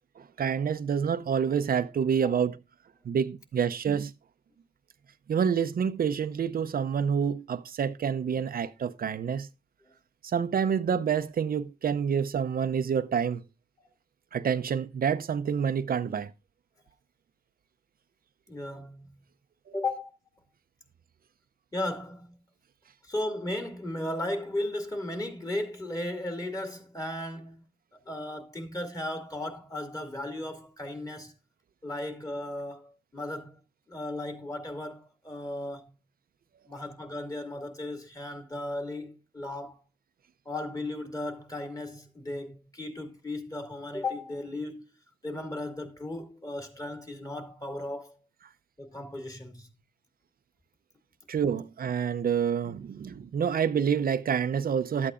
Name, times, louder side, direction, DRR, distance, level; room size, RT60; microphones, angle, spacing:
voice 1, 0.2-2.6 3.0-4.1 5.3-9.5 10.2-13.4 14.3-16.3 19.7-19.8 51.3-55.1, right 7 dB, 65° right, 0.5 m, -28 dB
voice 2, 18.5-19.1 19.7-20.1 21.7-22.4 23.0-31.3 31.8-33.6 33.9-35.8 36.7-39.8 40.5-44.8 45.2-48.2 48.8-49.7, left 1 dB, 20° left, 2.2 m, -36 dB
12.5 x 8.5 x 2.4 m
wide cardioid pair, 85°, 16 cm